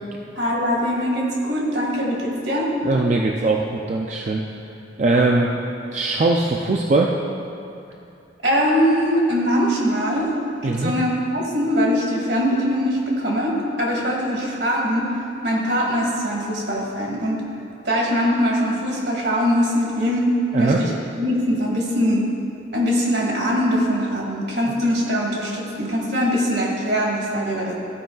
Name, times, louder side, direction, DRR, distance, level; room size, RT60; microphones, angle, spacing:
voice 1, 0.4-2.8 5.3-5.5 8.4-10.3 10.6-15.2 15.4-17.4 17.8-20.3 20.6-22.3 22.7-27.7, equal, 70° right, -2 dB, 1.9 m, -22 dB
voice 2, 2.8-4.4 5.0-5.5 5.9-7.1 10.6-10.9 20.5-20.8, right 3 dB, 40° right, 0 dB, 0.4 m, -20 dB
14.5 x 5.0 x 3.9 m, 2.7 s
head